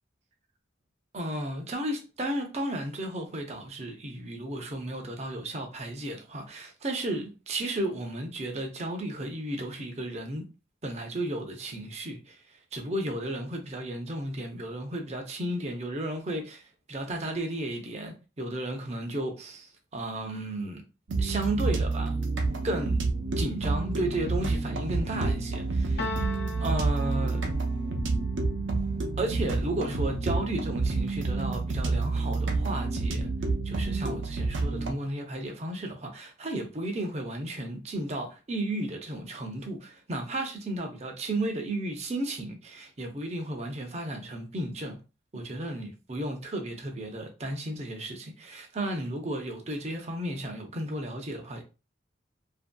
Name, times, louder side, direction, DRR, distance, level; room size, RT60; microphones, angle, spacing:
voice 1, 1.1-10.5 10.8-12.4 12.7-20.8 21.2-22.1 22.6-23.0 23.4-27.5 29.2-33.3 33.6-45.0 45.3-51.6, right 1 dB, 35° right, 0.5 m, -34 dB
sound 1, 21.1-34.9, right 3 dB, 85° right, 0.6 m, -29 dB
sound 2, 26.0-27.9, left 2 dB, 55° left, 0.4 m, -37 dB
2.8 x 2.6 x 2.2 m
head